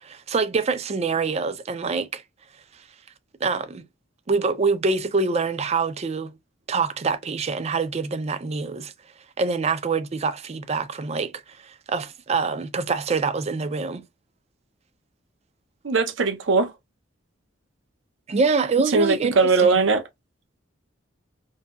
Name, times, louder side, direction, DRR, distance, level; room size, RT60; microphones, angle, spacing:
voice 1, 0.0-2.2 3.4-3.8 4.3-6.4 6.7-8.9 9.4-11.3 11.6-14.0 18.3-19.8, right 4 dB, 35° right, 0.4 m, -25 dB
voice 2, 15.8-16.7 18.9-20.0, right 4 dB, 70° right, 0.7 m, -20 dB
2.7 x 2.6 x 2.3 m
head